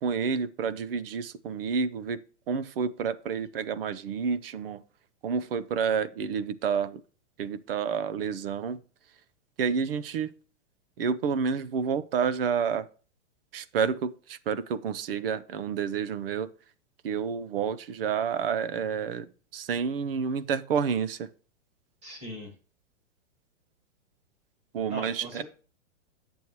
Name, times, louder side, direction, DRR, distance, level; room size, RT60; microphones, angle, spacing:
voice 1, 0.0-2.2 2.5-4.8 5.2-7.0 7.4-8.8 9.6-10.3 11.0-12.9 13.5-16.5 17.0-21.3 24.7-25.4, right 6 dB, 50° right, 16 dB, 0.6 m, -29 dB
voice 2, 22.0-22.5 24.9-25.4, right 1 dB, 15° right, 4 dB, 1.7 m, -40 dB
9.4 x 7.0 x 3.0 m, 0.37 s
hypercardioid pair, 170°, 38 cm